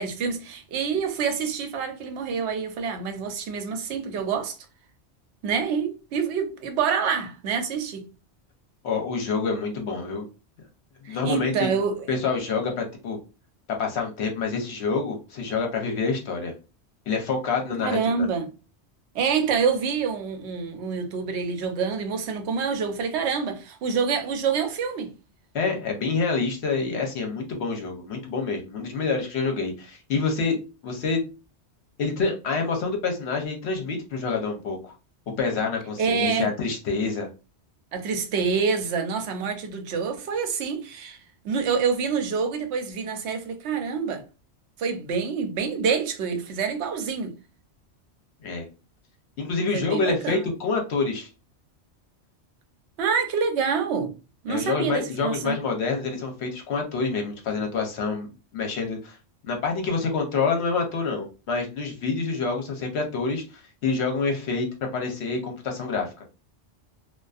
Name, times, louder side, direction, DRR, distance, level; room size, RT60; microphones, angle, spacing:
voice 1, 0.0-4.6 5.4-8.1 11.0-12.1 17.8-18.5 19.1-25.1 36.0-36.5 37.9-41.2 41.4-44.2 44.8-47.3 49.7-50.4 53.0-54.1 54.4-55.6, right 6 dB, 75° right, 0.8 m, -27 dB
voice 2, 8.8-10.3 11.0-11.7 12.1-13.2 13.8-16.5 17.1-18.3 25.5-31.2 32.0-34.9 35.4-37.3 48.4-48.7 49.4-51.3 54.5-58.3 58.5-59.2 59.4-64.7 64.9-66.1, left 4 dB, 70° left, 0.9 m, -27 dB
2.4 x 2.2 x 2.3 m
omnidirectional pair, 1.2 m